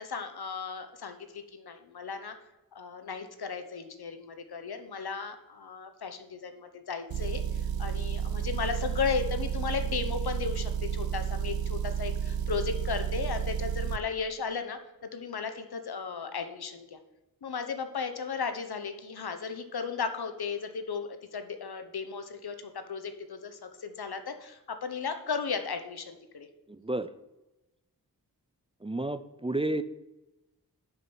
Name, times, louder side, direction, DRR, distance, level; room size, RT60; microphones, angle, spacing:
voice 1, 0.0-2.3 2.7-17.0 17.4-26.5, left 5 dB, 85° left, 8 dB, 1.0 m, -35 dB
Motor vehicle (road) / Engine, 7.1-14.0, right 8 dB, 75° right, 0.5 m, -31 dB
voice 2, 26.7-27.1 28.8-29.8, right 2 dB, 15° right, 13 dB, 0.4 m, -31 dB
6.9 x 5.9 x 7.1 m, 0.99 s
wide cardioid pair, 55°, 37 cm